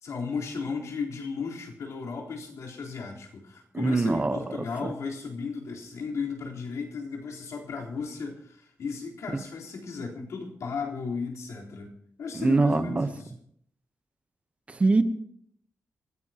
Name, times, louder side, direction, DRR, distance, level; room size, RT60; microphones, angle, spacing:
voice 1, 0.0-11.9 12.2-13.3, left 5 dB, 75° left, -2 dB, 3.8 m, -35 dB
voice 2, 3.7-4.4 4.8-4.9 12.3-13.1 14.7-15.0, right 3 dB, 25° right, 10 dB, 0.9 m, -23 dB
27.0 x 16.0 x 2.9 m, 0.66 s
wide cardioid pair, 170°, 5 cm